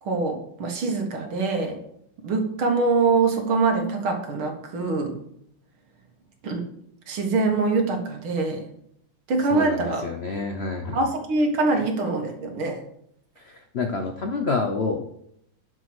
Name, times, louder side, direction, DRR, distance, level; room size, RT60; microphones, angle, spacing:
voice 1, 0.0-1.8 2.2-5.2 6.4-6.6 7.1-8.7 9.3-10.0 10.9-12.8, right 3 dB, 75° right, 2 dB, 2.4 m, -24 dB
voice 2, 9.5-11.0 11.7-11.8 13.4-15.0, left 4 dB, 65° left, 4 dB, 0.6 m, -28 dB
10.5 x 4.8 x 6.2 m, 0.73 s
omnidirectional pair, 2.3 m